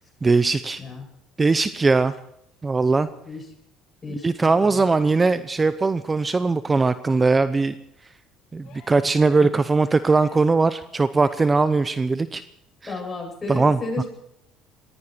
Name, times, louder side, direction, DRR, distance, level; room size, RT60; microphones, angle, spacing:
voice 1, 0.2-0.8 1.4-2.1 2.6-3.1 4.2-7.7 8.5-12.4 13.5-13.8, right 3 dB, 25° right, 13 dB, 0.7 m, -20 dB
voice 2, 4.0-4.8 9.4-9.5 12.9-14.1, left 3 dB, 25° left, 2 dB, 8.0 m, -33 dB
sound 1, 8.6-9.2 10.0-10.5 11.2-11.7 13.2-13.3, left 7 dB, 65° left, 6.7 m, -52 dB
21.0 x 15.5 x 4.5 m, 0.75 s
supercardioid pair, 85°, 0 cm